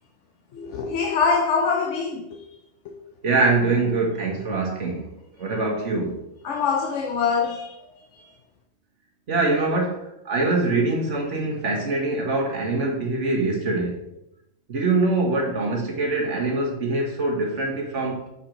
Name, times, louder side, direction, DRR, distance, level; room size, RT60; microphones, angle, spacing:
voice 1, 0.5-2.4 2.8-3.0 6.4-7.8, left 5 dB, 85° left, 2 dB, 1.0 m, -24 dB
voice 2, 3.2-5.1 5.4-6.2 9.3-14.0 14.7-18.3, right 3 dB, 90° right, 0 dB, 1.7 m, -24 dB
7.0 x 4.6 x 3.9 m, 0.84 s
omnidirectional pair, 1.2 m